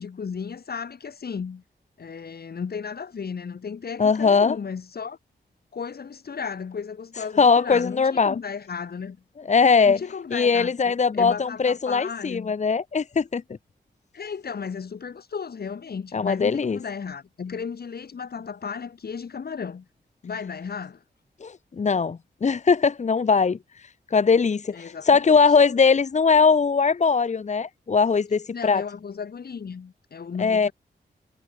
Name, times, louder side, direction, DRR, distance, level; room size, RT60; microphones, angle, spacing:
voice 1, 0.0-1.6 2.0-5.2 5.7-9.2 9.8-12.5 14.1-19.9 20.2-21.0 24.7-25.1 28.5-30.7, left 6 dB, 60° left, 7.0 m, -34 dB
voice 2, 4.0-4.6 7.4-8.4 9.5-10.0 10.3-13.4 16.1-16.8 21.4-28.8 30.4-30.7, left 5 dB, 40° left, 1.0 m, -20 dB
wide cardioid pair, 135°, 18 cm